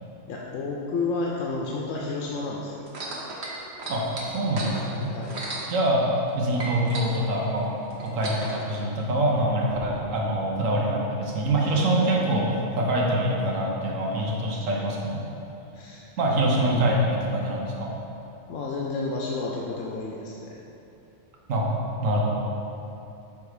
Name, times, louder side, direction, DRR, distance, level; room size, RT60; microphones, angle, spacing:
voice 1, 0.3-2.8 5.1-5.4 11.5-12.0 15.7-17.2 18.5-20.6, left 3 dB, 85° left, -3 dB, 1.0 m, -32 dB
sound 1, 2.9-6.3 6.6-8.6 9.4-9.5, right 2 dB, 60° right, 1.1 m, -35 dB
voice 2, 3.9-5.1 5.7-15.2 16.2-17.9 21.5-21.7 22.0-22.3, right 1 dB, 90° right, -2 dB, 1.3 m, -25 dB
5.8 x 3.7 x 4.8 m, 2.9 s
omnidirectional pair, 1.3 m